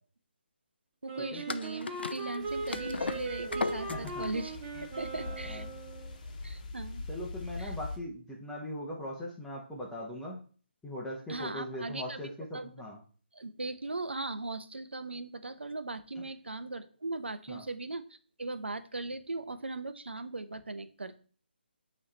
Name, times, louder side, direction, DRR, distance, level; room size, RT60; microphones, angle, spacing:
voice 1, 1.0-5.7 6.4-7.0 7.6-7.7 11.3-12.7 13.3-21.2, right 2 dB, 80° right, 11 dB, 0.7 m, -39 dB
Wind instrument woodwind instrument, 1.1-6.1, right 3 dB, 25° right, 1.1 m, -40 dB
sound 1, 1.5-6.6, left 4 dB, 70° left, 0.5 m, -38 dB
sound 2, 2.4-8.0, left 3 dB, 40° left, 1.2 m, -43 dB
voice 2, 3.9-4.3 5.2-5.7 7.1-10.4 10.8-13.0 16.2-16.3 17.5-17.6, left 1 dB, 5° left, -4 dB, 1.0 m, -40 dB
8.6 x 3.2 x 4.3 m, 0.42 s
figure-of-eight pair, 145°, 6 cm